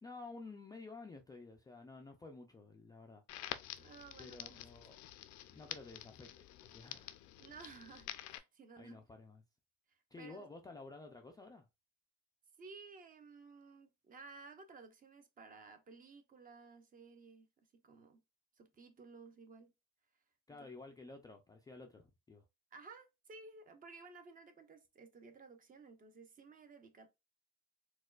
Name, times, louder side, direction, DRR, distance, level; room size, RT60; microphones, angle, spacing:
voice 1, 0.0-3.2 4.2-5.0 5.5-6.3 6.6-7.3 8.8-9.4 10.1-11.7 20.5-22.4, left 3 dB, 15° left, 0.3 m, -52 dB
Crackle, 3.3-8.4, left 13 dB, 70° left, 0.5 m, -49 dB
voice 2, 3.8-4.7 7.4-9.0 9.9-10.5 12.6-17.5 17.7-18.2 18.6-19.7 20.5-20.7 22.7-27.1, right 4 dB, 30° right, 0.6 m, -56 dB
4.2 x 2.3 x 2.3 m
cardioid pair, 125°, 29 cm